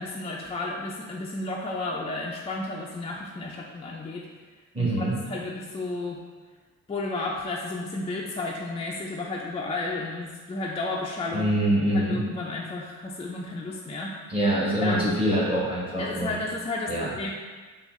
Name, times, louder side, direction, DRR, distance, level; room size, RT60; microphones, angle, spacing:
voice 1, 0.0-4.3 4.8-6.2 6.9-11.6 11.9-14.2 14.8-15.3 16.0-17.3, left 2 dB, 20° left, -3 dB, 0.3 m, -32 dB
voice 2, 4.7-5.2 11.3-12.2 14.3-16.3 16.9-17.1, right 1 dB, 15° right, -6 dB, 1.0 m, -24 dB
6.8 x 2.4 x 3.1 m, 1.4 s
cardioid pair, 145°, 33 cm